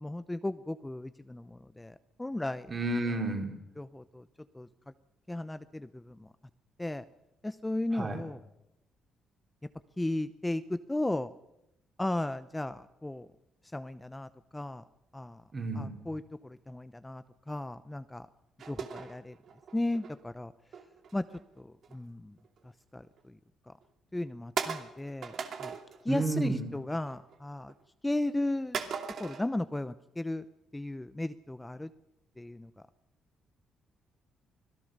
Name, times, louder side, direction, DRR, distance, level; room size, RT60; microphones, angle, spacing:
voice 1, 0.0-2.7 3.8-4.2 4.5-4.7 5.3-6.2 6.8-7.0 7.4-8.4 10.0-11.3 12.0-13.3 13.7-14.8 15.1-15.4 15.8-18.3 18.7-19.3 19.7-20.5 21.1-21.2 21.6-22.3 22.9-23.0 24.1-25.3 25.6-25.7 26.0-27.7 28.0-28.8 29.2-30.4 30.7-31.9 32.4-32.7, left 1 dB, 10° left, 13 dB, 0.7 m, -35 dB
voice 2, 2.7-3.5 7.9-8.2 15.5-15.9 26.1-26.7, right 2 dB, 35° right, 3 dB, 4.7 m, -31 dB
sound 1, 18.6-20.1 20.7-22.0 22.4-22.7 23.2-23.3 23.8-23.9 24.6-26.0 26.4-26.8 27.0-27.7 28.7-29.5, right 6 dB, 60° right, 2.6 m, -38 dB
25.0 x 17.0 x 6.7 m, 0.87 s
cardioid pair, 90°, 0 cm